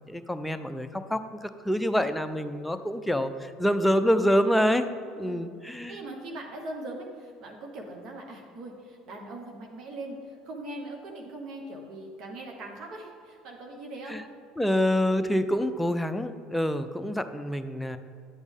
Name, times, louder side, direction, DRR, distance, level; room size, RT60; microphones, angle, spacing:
voice 1, 0.1-4.8 5.2-6.0 14.1-14.2 14.6-18.0, equal, 5° left, 9 dB, 0.6 m, -26 dB
voice 2, 5.2-5.5 5.9-14.2, right 1 dB, 50° right, 1 dB, 1.2 m, -40 dB
9.8 x 8.1 x 3.5 m, 2.4 s
figure-of-eight pair, 65°, 0 cm